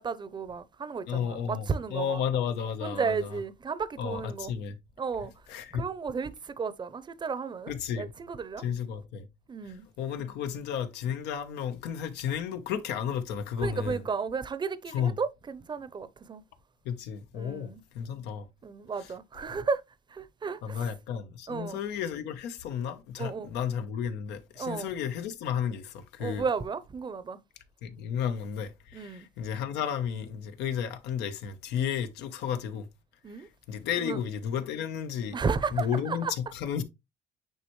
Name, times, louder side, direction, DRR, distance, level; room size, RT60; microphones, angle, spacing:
voice 1, 0.0-2.2 2.8-4.5 5.0-5.3 5.7-8.6 9.5-9.9 13.6-16.4 17.3-17.8 18.6-19.8 20.1-20.9 21.5-21.8 23.2-23.5 24.6-24.9 26.2-27.4 28.9-29.3 33.2-33.5 34.0-34.2 35.3-36.3, right 5 dB, 25° right, 0.7 m, -33 dB
voice 2, 1.1-3.3 4.0-4.8 5.5-5.8 7.7-8.1 8.6-9.3 10.0-14.0 14.9-15.1 16.8-18.5 19.0-19.1 20.6-26.4 27.8-32.9 33.3-35.4 35.7-36.8, left 8 dB, 85° left, 1.0 m, -33 dB
9.1 x 3.4 x 3.1 m
cardioid pair, 110°, 17 cm